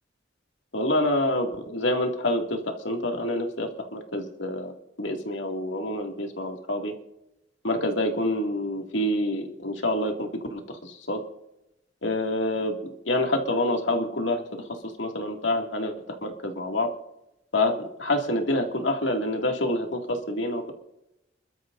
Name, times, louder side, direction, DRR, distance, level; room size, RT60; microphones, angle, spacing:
voice 1, 0.7-4.7 5.0-6.9 7.6-11.2 12.0-12.7 13.1-16.9 17.5-17.7 18.0-20.7, left 1 dB, 75° left, 2 dB, 2.4 m, -27 dB
28.0 x 13.0 x 2.6 m, 0.89 s
head